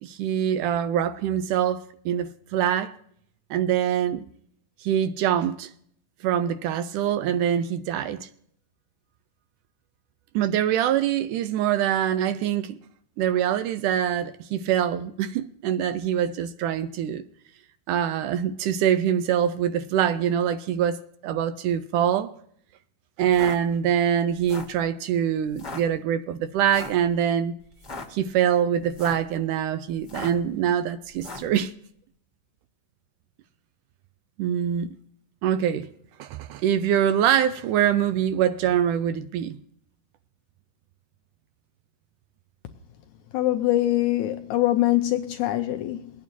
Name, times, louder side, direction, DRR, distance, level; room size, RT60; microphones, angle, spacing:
voice 1, 0.0-2.9 3.5-4.3 4.8-5.7 6.2-8.3 10.4-12.8 13.2-17.2 17.9-22.3 23.2-27.5 28.1-31.7 34.4-35.0 35.4-35.9 36.2-39.6, right 9 dB, 80° right, 2.0 m, -24 dB
sound 1, 23.2-23.6 24.3-24.8 25.5-25.8 26.7-27.0 27.7-28.1 28.8-29.3 30.0-30.5 31.2-31.5, left 3 dB, 25° left, 0.9 m, -38 dB
voice 2, 43.3-46.1, left 15 dB, 80° left, 1.8 m, -23 dB
22.5 x 9.2 x 2.7 m
omnidirectional pair, 3.9 m